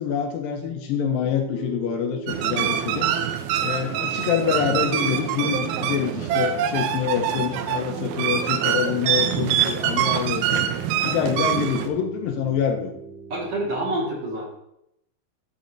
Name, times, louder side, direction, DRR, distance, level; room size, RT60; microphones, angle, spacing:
voice 1, 0.0-3.1 3.6-10.7 11.0-12.9, left 8 dB, 80° left, 4 dB, 2.4 m, -26 dB
Piano, 0.6-13.7, right 5 dB, 15° right, 1.5 m, -40 dB
sound 1, 2.3-11.9, right 10 dB, 80° right, 2.4 m, -25 dB
voice 2, 13.3-14.5, right 1 dB, 50° right, -3 dB, 2.7 m, -27 dB
12.5 x 4.2 x 3.9 m, 0.78 s
omnidirectional pair, 4.4 m